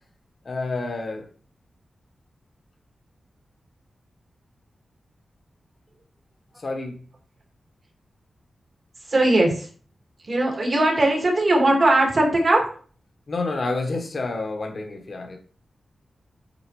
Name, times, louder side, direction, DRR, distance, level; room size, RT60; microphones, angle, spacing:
voice 1, 0.4-1.3 6.6-7.0 13.3-15.4, left 3 dB, 40° left, 4 dB, 1.2 m, -29 dB
voice 2, 9.1-9.7 10.2-12.6, right 1 dB, 40° right, 1 dB, 2.0 m, -19 dB
8.3 x 4.5 x 3.1 m, 0.42 s
wide cardioid pair, 175°, 0 cm